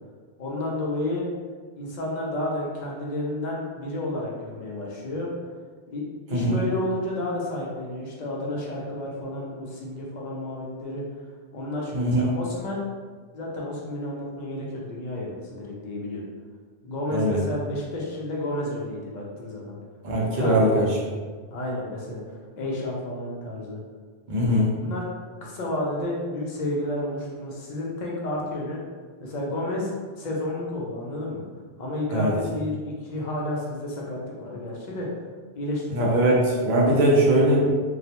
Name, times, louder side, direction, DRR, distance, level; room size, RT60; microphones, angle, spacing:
voice 1, 0.4-1.3 1.8-5.3 5.9-6.0 6.3-11.0 11.5-12.8 13.3-16.2 16.8-19.7 20.3-20.9 21.5-23.8 24.4-24.5 24.8-25.0 25.4-28.8 29.2-29.9 30.2-31.4 31.8-35.1 35.5-36.4, left 1 dB, 55° left, -3 dB, 0.5 m, -31 dB
voice 2, 11.9-12.3 17.1-17.4 20.0-20.9 24.3-24.7 32.1-32.3 35.9-37.7, right 1 dB, 55° right, -4 dB, 0.6 m, -21 dB
2.3 x 2.1 x 2.8 m, 1.5 s
omnidirectional pair, 1.2 m